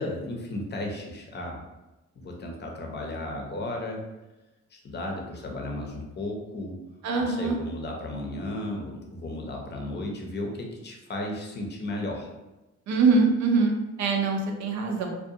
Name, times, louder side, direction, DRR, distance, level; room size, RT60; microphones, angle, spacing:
voice 1, 0.0-1.6 2.1-4.0 4.7-6.8 7.2-12.3, left 1 dB, 35° left, 1 dB, 0.6 m, -34 dB
voice 2, 7.0-7.6 12.9-15.2, right 4 dB, 65° right, 2 dB, 0.6 m, -23 dB
2.5 x 2.2 x 2.7 m, 1.0 s
cardioid pair, 90°, 30 cm